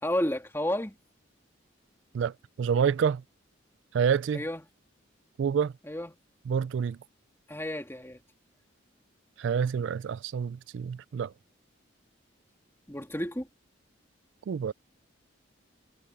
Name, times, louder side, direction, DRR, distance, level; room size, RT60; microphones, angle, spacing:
voice 1, 0.0-0.9 4.3-4.6 5.8-6.1 7.5-8.2 12.9-13.5, left 1 dB, 10° left, 2.9 m, -31 dB
voice 2, 2.1-3.2 3.9-4.4 5.4-5.7 6.5-7.0 9.4-11.3 14.5-14.7, right 7 dB, 65° right, 0.3 m, -28 dB
head